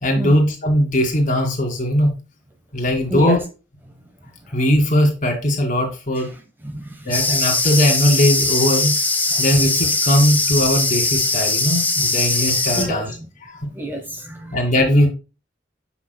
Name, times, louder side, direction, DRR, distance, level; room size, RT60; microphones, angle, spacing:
voice 1, 0.0-2.2 2.7-3.4 4.5-6.3 7.1-8.9 9.4-13.1 13.4-13.6 14.5-15.1, equal, 45° left, 2.3 m, -19 dB
voice 2, 3.1-3.4 6.6-7.2 9.4-9.5 12.7-13.2 13.7-14.6, right 1 dB, 10° right, 0.8 m, -28 dB
sound 1, 7.1-12.8, left 2 dB, 10° left, 1.5 m, -20 dB
7.7 x 6.2 x 2.2 m
head